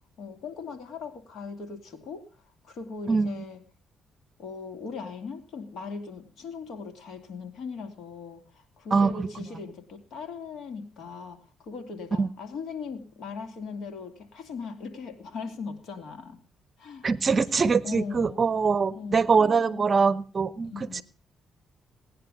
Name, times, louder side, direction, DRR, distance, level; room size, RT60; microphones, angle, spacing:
voice 1, 0.2-2.2 2.6-3.6 4.4-16.4 16.8-18.4 18.9-19.9 20.6-21.0, left 5 dB, 70° left, 6 dB, 2.6 m, -39 dB
voice 2, 8.9-9.3 12.2-12.3 17.0-20.7, right 5 dB, 40° right, 18 dB, 0.7 m, -23 dB
17.5 x 10.0 x 5.3 m, 0.38 s
cardioid pair, 90°, 0 cm